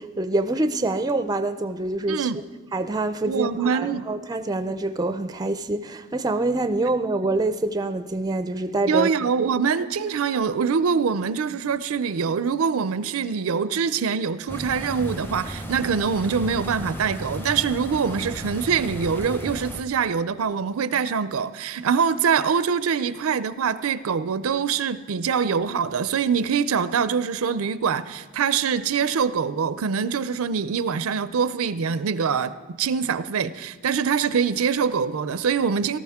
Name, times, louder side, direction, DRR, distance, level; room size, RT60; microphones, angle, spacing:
voice 1, 0.0-2.3 2.7-9.3, right 2 dB, 20° right, 0.4 m, -26 dB
voice 2, 2.1-2.4 3.3-4.0 8.9-32.5 32.8-36.0, right 6 dB, 75° right, 0.5 m, -24 dB
sound 1, 14.5-19.8, equal, 10° left, 0.7 m, -35 dB
18.0 x 13.0 x 3.6 m
head